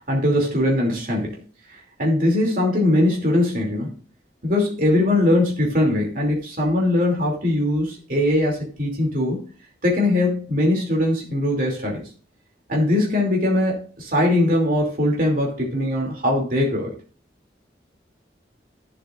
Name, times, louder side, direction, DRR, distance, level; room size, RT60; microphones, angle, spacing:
voice 1, 0.1-1.4 2.0-3.9 4.4-9.4 9.8-12.0 12.7-16.9, left 1 dB, 50° right, -1 dB, 2.7 m, -21 dB
13.5 x 7.6 x 2.5 m, 0.38 s
head